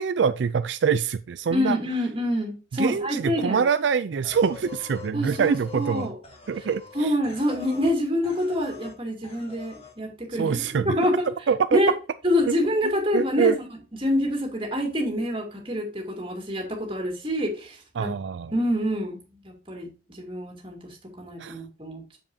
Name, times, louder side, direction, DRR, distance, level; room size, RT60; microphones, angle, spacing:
voice 1, 0.0-1.8 2.7-6.1 6.5-7.1 10.4-10.9 11.5-11.8 13.1-13.6 18.0-18.5 21.4-21.6, right 6 dB, 75° right, 12 dB, 0.4 m, -24 dB
voice 2, 1.5-3.6 5.1-6.1 6.9-10.5 10.8-11.3 11.7-11.9 12.2-13.5 14.0-18.1 18.5-22.2, left 1 dB, 30° right, 1 dB, 2.7 m, -26 dB
sound 1, 4.2-8.0 8.2-9.0 9.2-10.0, left 4 dB, 30° left, 1.9 m, -44 dB
7.3 x 7.3 x 2.7 m, 0.32 s
head